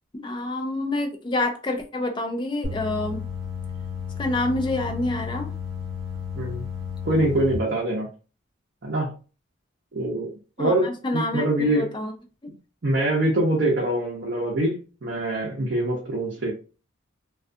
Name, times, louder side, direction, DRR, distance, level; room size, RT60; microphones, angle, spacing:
voice 1, 0.1-3.2 4.2-5.5 10.6-12.1 12.4-12.5, left 2 dB, 25° left, 0.4 m, -27 dB
sound 1, 2.6-7.5, left 6 dB, 25° right, 0.9 m, -33 dB
voice 2, 6.3-6.7 7.0-8.1 8.8-9.1 9.9-10.3 10.6-11.9 12.8-16.5, right 1 dB, 55° right, 0.6 m, -24 dB
2.3 x 2.3 x 2.5 m
head